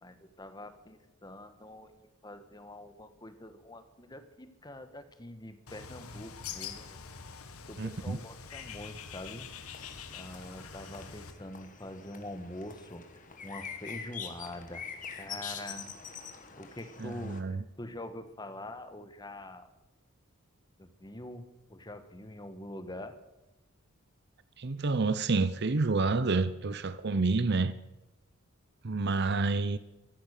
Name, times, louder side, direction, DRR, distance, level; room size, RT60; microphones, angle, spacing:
voice 1, 0.0-1.9 2.2-7.0 7.7-9.5 10.1-14.9 15.1-15.9 16.6-19.7 20.8-23.2, left 1 dB, 20° left, 1.4 m, -45 dB
Bird, 5.7-11.3, left 6 dB, 90° left, 1.5 m, -45 dB
voice 2, 7.8-8.2 17.0-17.6 24.6-27.7 28.8-29.8, right 3 dB, 50° right, 0.7 m, -28 dB
sound 1, 9.5-17.4, left 6 dB, 35° left, 1.9 m, -45 dB
15.0 x 14.0 x 6.7 m
head